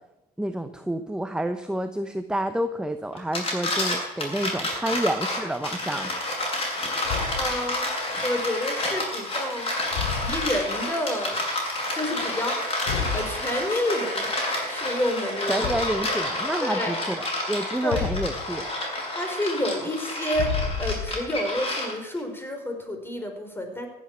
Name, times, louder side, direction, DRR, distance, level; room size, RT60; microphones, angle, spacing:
voice 1, 0.4-6.1 15.5-18.7, right 1 dB, 5° right, 9 dB, 0.9 m, -29 dB
sound 1, 3.2-22.2, left 1 dB, 25° left, 7.4 m, -29 dB
Thump thud, 7.0-7.6 9.9-10.6 12.9-13.3 15.6-16.1 17.9-18.5 20.3-21.3, left 6 dB, 80° left, 3.0 m, -30 dB
voice 2, 7.3-7.9 8.2-9.7 10.1-11.4 11.9-12.7 13.1-14.3 14.7-15.7 16.6-16.9 17.8-18.1 19.1-23.9, left 1 dB, 10° left, 5 dB, 4.2 m, -29 dB
15.5 x 8.6 x 8.4 m, 0.94 s
supercardioid pair, 85°, 19 cm